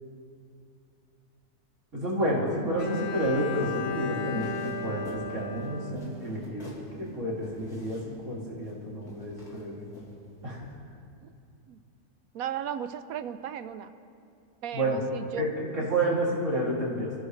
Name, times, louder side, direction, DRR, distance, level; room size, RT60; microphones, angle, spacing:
voice 1, 1.9-9.9 10.4-10.6 14.7-15.0 15.4-17.1, right 1 dB, 50° right, -5 dB, 3.3 m, -30 dB
Bowed string instrument, 2.8-6.8, left 3 dB, 45° left, 1.2 m, -35 dB
sound 1, 3.2-10.6, left 1 dB, 75° left, 3.4 m, -46 dB
voice 2, 12.3-13.9 14.6-15.5, right 9 dB, 70° right, 11 dB, 1.1 m, -36 dB
24.5 x 15.0 x 3.3 m, 2.4 s
omnidirectional pair, 1.6 m